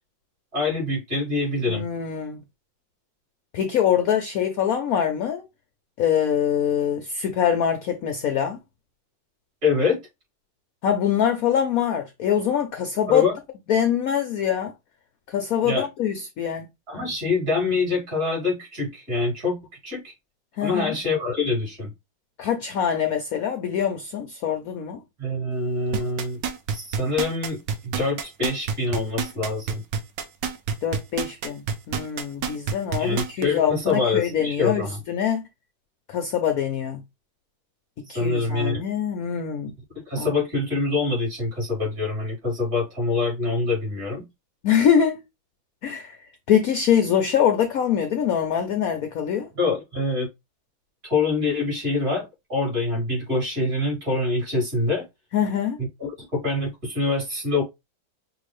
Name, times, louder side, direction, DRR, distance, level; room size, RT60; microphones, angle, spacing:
voice 1, 0.5-1.9 9.6-10.0 13.1-13.4 15.6-15.9 16.9-19.6 19.8-20.1 20.6-21.9 25.2-26.4 26.7-29.8 33.0-35.0 38.1-38.8 40.1-44.2 49.6-50.3 51.0-55.1 55.8-57.6, left 3 dB, 45° right, 3.9 m, -25 dB
voice 2, 1.7-2.4 3.5-5.4 6.0-8.6 10.8-13.2 13.7-14.7 15.3-16.7 20.6-20.9 22.4-25.0 30.8-35.4 36.1-37.0 38.1-39.7 40.2-40.3 44.6-45.2 45.8-46.2 46.5-49.5 55.3-55.8, left 8 dB, 75° left, 0.8 m, -24 dB
sound 1, 25.9-33.4 33.9-34.0, right 6 dB, 65° right, 1.2 m, -27 dB
5.9 x 2.6 x 3.1 m
omnidirectional pair, 2.2 m